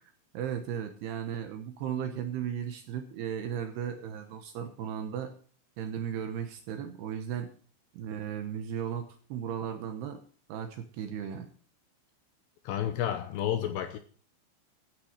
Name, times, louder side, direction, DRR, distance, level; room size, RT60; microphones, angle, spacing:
voice 1, 0.3-5.3 5.8-7.5 7.9-9.0 9.3-10.2 10.5-11.5, right 8 dB, 70° right, 7 dB, 2.6 m, -35 dB
voice 2, 12.6-14.0, left 10 dB, 80° left, 9 dB, 2.6 m, -31 dB
12.0 x 8.4 x 6.5 m, 0.43 s
omnidirectional pair, 5.7 m